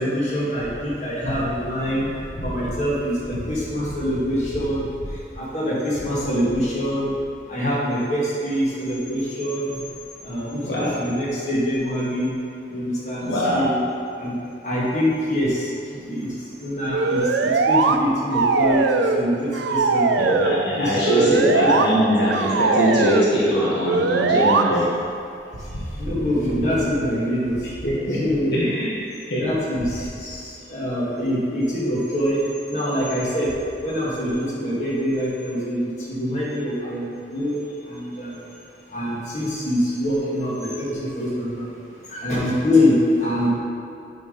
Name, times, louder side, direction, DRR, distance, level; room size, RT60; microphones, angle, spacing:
voice 1, 0.0-7.1 7.5-9.8 10.2-12.3 12.7-13.8 14.2-14.4 14.6-20.2 20.7-21.7 25.6-27.7 28.2-28.6 29.4-38.5 38.9-43.5, equal, 40° left, -8 dB, 1.8 m, -25 dB
voice 2, 13.2-13.7 20.2-24.9 27.8-28.2 28.5-29.0 29.3-29.5, equal, 75° left, -7 dB, 1.5 m, -21 dB
sound 1, 16.9-18.0 18.3-19.2 19.5-20.6 21.0-21.8 22.3-23.3 23.9-24.6, right 4 dB, 80° right, 0.4 m, -20 dB
6.9 x 4.6 x 5.3 m, 2.6 s
head